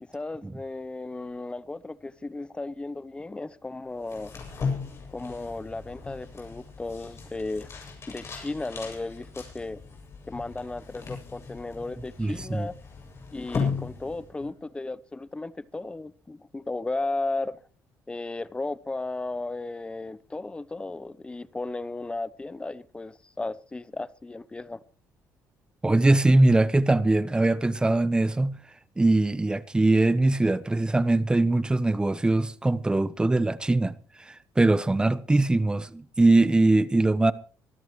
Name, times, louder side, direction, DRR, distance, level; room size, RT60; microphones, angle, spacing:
voice 1, 0.0-4.3 5.1-7.7 8.1-9.8 10.3-12.8 13.3-17.6 18.1-24.8, left 2 dB, 15° left, 0.8 m, -35 dB
sound 1, 4.0-14.6, left 5 dB, 40° left, 7.5 m, -37 dB
voice 2, 12.2-12.7 25.8-28.6 29.0-33.9 34.3-37.3, right 2 dB, 15° right, 0.9 m, -22 dB
24.5 x 13.5 x 3.2 m
cardioid pair, 105°, 7 cm